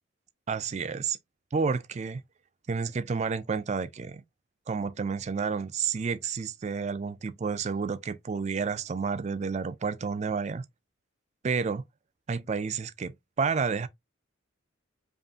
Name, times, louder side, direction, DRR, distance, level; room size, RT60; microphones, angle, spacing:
voice 1, 0.5-1.2 1.5-2.2 2.7-4.2 4.7-10.6 11.4-11.8 12.3-13.9, right 5 dB, 35° right, 0.3 m, -30 dB
5.2 x 2.4 x 2.7 m
head